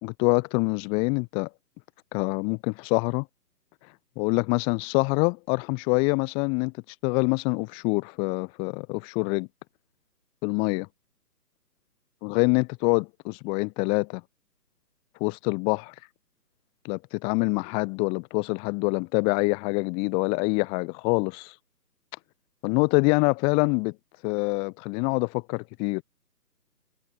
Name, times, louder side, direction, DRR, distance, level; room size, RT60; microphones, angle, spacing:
voice 1, 0.0-1.5 2.1-3.3 4.2-6.7 7.0-9.5 10.4-10.9 12.2-14.2 15.2-15.9 16.8-21.5 22.6-23.9 24.2-26.0, left 34 dB, 10° left, 1.4 m, -25 dB
figure-of-eight pair, 150°, 49 cm